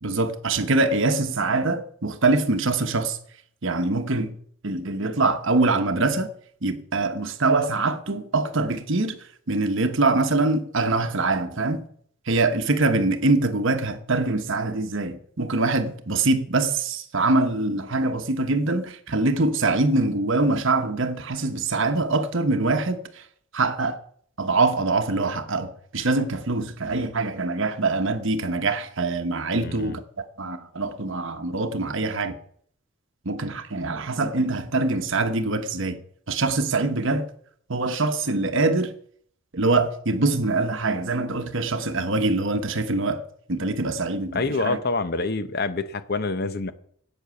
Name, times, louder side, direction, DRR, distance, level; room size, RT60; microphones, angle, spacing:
voice 1, 0.0-3.2 3.6-4.4 4.6-6.3 6.6-9.2 9.5-11.8 12.3-23.2 23.5-24.0 24.4-32.4 33.2-36.0 36.3-37.3 37.7-38.9 39.5-44.8, right 3 dB, 55° right, 1.1 m, -24 dB
voice 2, 29.5-30.0 44.3-46.7, left 3 dB, 45° left, 0.7 m, -26 dB
11.0 x 8.6 x 7.0 m
head